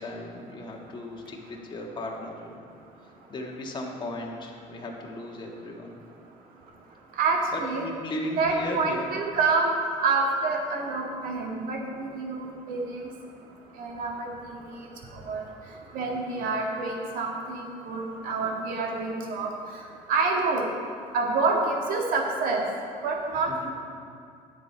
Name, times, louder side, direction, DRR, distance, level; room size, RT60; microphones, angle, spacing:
voice 1, 0.0-2.5 3.3-6.0 7.5-9.2 16.0-16.5 23.5-23.7, left 1 dB, 30° left, -1 dB, 1.6 m, -36 dB
voice 2, 7.2-7.8 8.4-9.7 10.0-13.1 13.8-14.3 14.6-14.8 15.3-15.4 15.9-19.5 20.1-20.6 21.1-22.6 23.0-23.7, right 3 dB, 70° right, 0 dB, 1.8 m, -27 dB
10.5 x 7.5 x 4.6 m, 2.4 s
cardioid pair, 100°, 15 cm